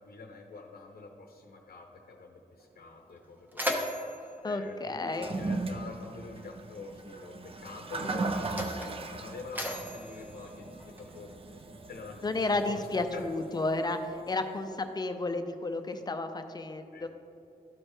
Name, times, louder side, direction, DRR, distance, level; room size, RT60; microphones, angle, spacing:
voice 1, 0.0-12.9 13.1-13.6 14.1-14.8 16.9-17.1, left 3 dB, 65° left, 2 dB, 0.7 m, -46 dB
Mechanisms, 2.6-2.7 3.1-5.8 6.8-6.9 7.8-11.3, equal, 10° right, 0.9 m, -38 dB
voice 2, 4.4-5.3 12.2-17.1, left 2 dB, 25° left, 7 dB, 0.5 m, -32 dB
Toilet flush, 5.1-14.4, right 3 dB, 35° right, 0.5 m, -38 dB
13.0 x 4.5 x 3.3 m, 2.6 s
wide cardioid pair, 160°, 16 cm